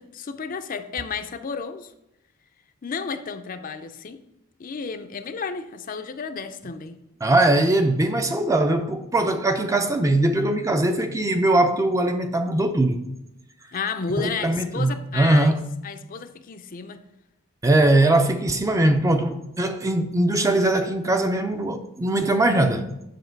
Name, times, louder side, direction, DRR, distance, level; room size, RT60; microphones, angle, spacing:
voice 1, 0.0-1.9 2.8-4.2 4.6-7.0 13.7-15.6 15.8-17.0, left 5 dB, 40° left, 0.5 m, -32 dB
voice 2, 7.2-13.0 14.2-15.7 17.6-22.9, right 1 dB, 15° right, 0.5 m, -21 dB
7.8 x 5.8 x 4.5 m
head